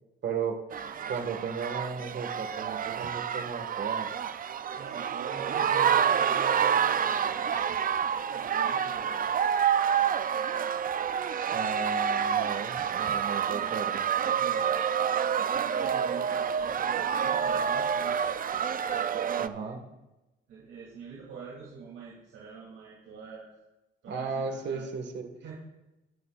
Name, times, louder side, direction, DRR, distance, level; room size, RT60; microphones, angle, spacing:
voice 1, 0.2-0.6 1.1-4.1 11.5-14.1 19.4-19.8 24.1-25.3, right 5 dB, 60° right, 5 dB, 2.0 m, -35 dB
Soccer stadium Booohh, 0.7-19.5, right 8 dB, 45° right, 0.6 m, -28 dB
voice 2, 4.7-7.9 8.3-9.2 13.5-13.9 14.4-14.9 15.5-18.3 19.0-19.8 20.5-23.5 24.0-24.9 25.4-25.5, right 5 dB, 80° right, -5 dB, 3.2 m, -45 dB
23.5 x 11.0 x 2.6 m, 1.0 s
cardioid pair, 90°, 20 cm